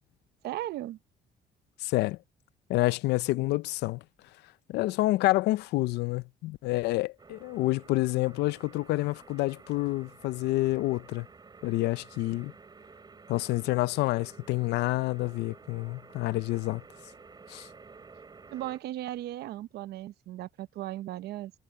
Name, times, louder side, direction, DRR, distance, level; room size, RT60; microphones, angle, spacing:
voice 1, 0.4-1.0 11.6-11.7 18.5-21.5, right 14 dB, 75° right, 0.9 m, -37 dB
voice 2, 1.8-2.2 2.7-4.0 4.7-11.3 11.6-12.5 13.3-16.8 17.5-17.7, left 19 dB, 85° left, 0.5 m, -28 dB
sound 1, 7.2-18.8, right 4 dB, 25° right, 5.4 m, -52 dB
cardioid pair, 110°, 17 cm